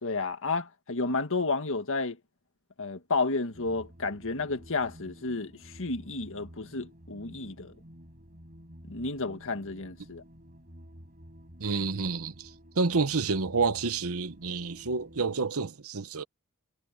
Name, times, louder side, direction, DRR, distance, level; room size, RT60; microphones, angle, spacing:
voice 1, 0.0-2.2 2.8-7.7 8.9-10.2, left 3 dB, 65° left, 1.8 m, -31 dB
sound 1, 3.5-15.4, equal, 40° right, 6.3 m, -51 dB
voice 2, 11.6-16.2, right 4 dB, 70° right, 1.0 m, -29 dB
head